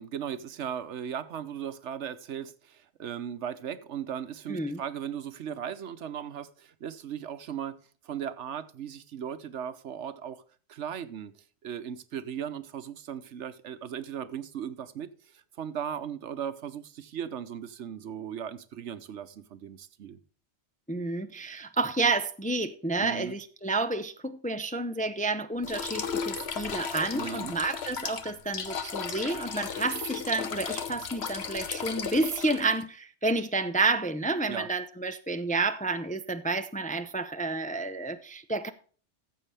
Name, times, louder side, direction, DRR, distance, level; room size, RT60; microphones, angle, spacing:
voice 1, 0.0-7.8 8.0-10.4 10.7-20.2 23.0-23.3 27.1-27.6 34.5-34.7, right 8 dB, 80° right, 1.1 m, -37 dB
voice 2, 4.5-4.8 20.9-38.7, right 3 dB, 10° left, 0.4 m, -30 dB
sound 1, 25.6-32.8, left 6 dB, 65° left, 1.3 m, -35 dB
14.5 x 7.5 x 3.4 m
omnidirectional pair, 1.2 m